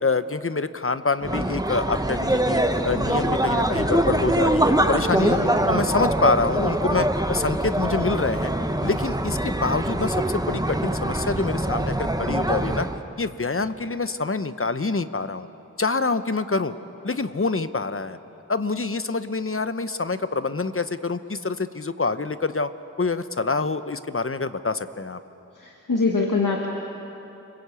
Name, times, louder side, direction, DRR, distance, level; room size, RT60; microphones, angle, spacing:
voice 1, 0.0-5.4 5.7-8.5 8.8-12.9 13.2-15.5 15.8-16.7 17.0-18.2 18.5-22.7 23.0-25.2, left 3 dB, 45° left, 12 dB, 1.0 m, -26 dB
sound 1, 1.2-13.0, right 1 dB, 10° right, 1.4 m, -24 dB
voice 2, 5.1-5.7 25.6-26.7, left 3 dB, 85° left, 0 dB, 2.1 m, -24 dB
29.5 x 21.5 x 8.4 m, 3.0 s
wide cardioid pair, 40°, 31 cm